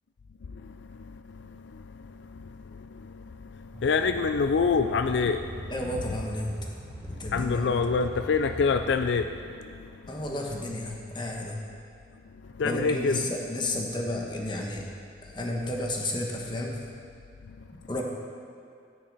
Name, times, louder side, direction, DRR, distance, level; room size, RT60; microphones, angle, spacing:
sound 1, 3.7-9.2, right 1 dB, ahead, 2.9 m, -41 dB
voice 1, 3.8-5.4 7.3-9.2 12.6-13.2, left 5 dB, 75° left, 8 dB, 0.4 m, -25 dB
voice 2, 5.7-6.7 7.0-7.8 10.1-11.6 12.6-14.8 15.2-16.8 17.9-18.0, left 1 dB, 25° left, 0 dB, 1.2 m, -32 dB
13.0 x 9.9 x 4.1 m, 2.4 s
head